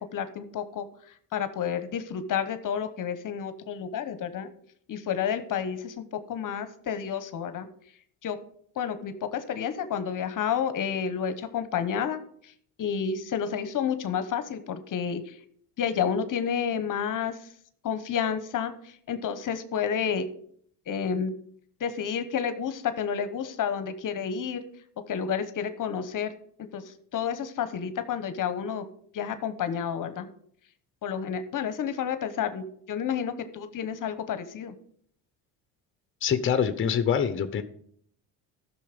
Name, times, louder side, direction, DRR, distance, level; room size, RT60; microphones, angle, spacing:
voice 1, 0.1-0.8 1.3-4.5 4.9-7.7 8.2-8.4 8.8-12.2 12.8-15.4 15.8-17.4 17.8-20.3 20.9-21.3 21.8-24.6 25.1-26.3 26.7-28.9 29.1-30.3 31.0-34.7, left 7 dB, 50° left, 11 dB, 1.1 m, -30 dB
voice 2, 36.2-37.6, left 7 dB, 30° left, 10 dB, 1.0 m, -25 dB
13.0 x 6.4 x 5.2 m, 0.64 s
cardioid pair, 100°, 42 cm